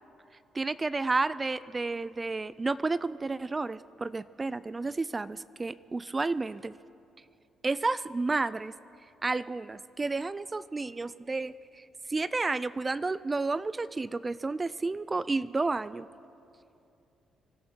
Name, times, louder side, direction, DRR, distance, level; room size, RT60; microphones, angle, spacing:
voice 1, 0.5-6.7 7.6-8.7 9.2-16.1, right 3 dB, 25° right, 17 dB, 0.3 m, -31 dB
24.5 x 13.0 x 4.4 m, 2.7 s
cardioid pair, 90°, 0 cm